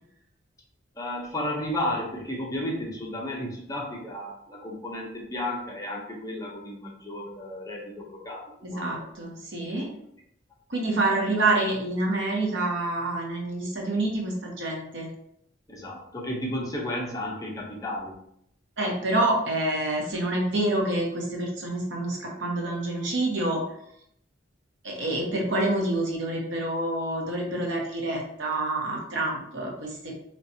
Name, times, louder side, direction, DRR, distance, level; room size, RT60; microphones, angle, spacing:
voice 1, 1.0-8.9 9.6-9.8 15.7-18.2, left 1 dB, 20° left, -2 dB, 0.8 m, -33 dB
voice 2, 8.6-9.9 10.7-15.1 18.8-23.6 24.8-30.2, right 2 dB, 70° right, 0 dB, 1.0 m, -27 dB
4.2 x 3.1 x 2.8 m, 0.73 s
head